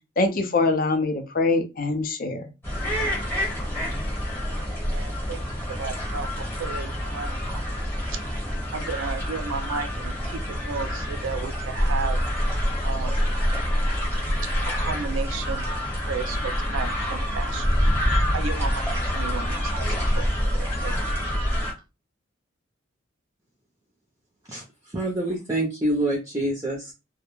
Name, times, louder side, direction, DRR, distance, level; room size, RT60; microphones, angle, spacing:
voice 1, 0.2-2.5, left 3 dB, 45° left, 0.4 m, -23 dB
sound 1, 2.6-21.7, equal, 10° left, 0.9 m, -26 dB
voice 2, 4.5-5.4 5.7-6.3 6.6-7.4 8.1-8.2 8.7-12.2 12.8-13.2 14.8-15.6 16.0-17.8 18.3-21.0, right 5 dB, 80° right, 0.4 m, -34 dB
voice 3, 24.9-26.9, right 1 dB, 15° right, 0.5 m, -26 dB
2.2 x 2.1 x 3.0 m
head